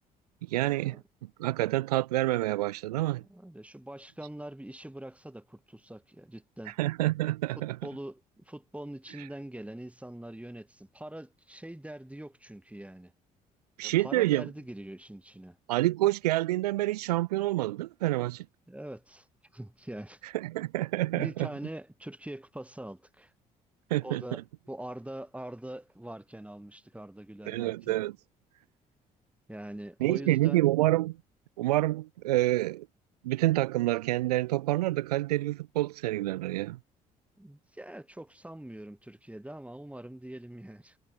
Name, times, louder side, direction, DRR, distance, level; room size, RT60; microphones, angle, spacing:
voice 1, 0.5-1.0 1.4-3.2 6.8-7.8 9.2-9.3 13.8-14.5 15.7-18.4 20.3-21.5 23.9-24.4 27.5-28.2 30.0-31.2 31.6-32.9 33.2-36.8, right 17 dB, 75° right, 0.4 m, -27 dB
voice 2, 3.2-6.8 7.6-13.1 13.8-15.6 18.7-19.3 19.5-20.2 21.2-23.3 24.0-24.4 24.7-27.9 29.5-30.6 37.4-41.0, right 1 dB, 5° right, 3.2 m, -43 dB
figure-of-eight pair, 50°, 20 cm